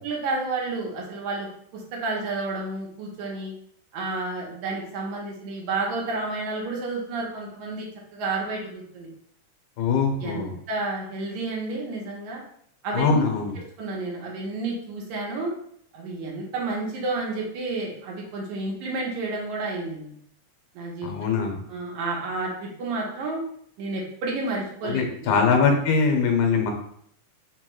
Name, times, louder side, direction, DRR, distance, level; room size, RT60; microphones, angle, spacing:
voice 1, 0.0-1.5 1.7-3.5 3.9-9.1 10.2-12.4 12.8-13.2 13.8-15.5 15.9-20.1 20.8-21.1 21.7-23.4 23.8-25.3, right 3 dB, 80° right, -2 dB, 2.2 m, -30 dB
voice 2, 9.8-10.5 12.9-13.5 21.0-21.6 24.8-26.7, left 5 dB, 90° left, 2 dB, 2.3 m, -22 dB
5.2 x 2.3 x 3.0 m, 0.67 s
omnidirectional pair, 3.4 m